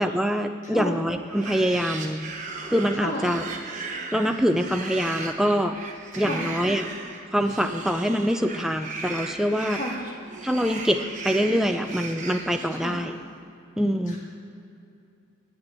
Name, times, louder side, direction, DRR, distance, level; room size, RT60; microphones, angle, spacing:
voice 1, 0.0-2.2 2.7-3.4 4.1-5.8 6.2-6.9 7.3-9.8 10.4-13.1 13.8-14.2, equal, ahead, 6 dB, 0.4 m, -24 dB
voice 2, 0.6-1.0 3.0-3.2 6.1-6.5 9.7-9.9 12.8-13.0 14.1-14.2, left 1 dB, 35° left, -4 dB, 1.7 m, -32 dB
sound 1, 1.2-13.2, right 3 dB, 35° right, 0.9 m, -37 dB
8.5 x 7.9 x 8.3 m, 2.7 s
head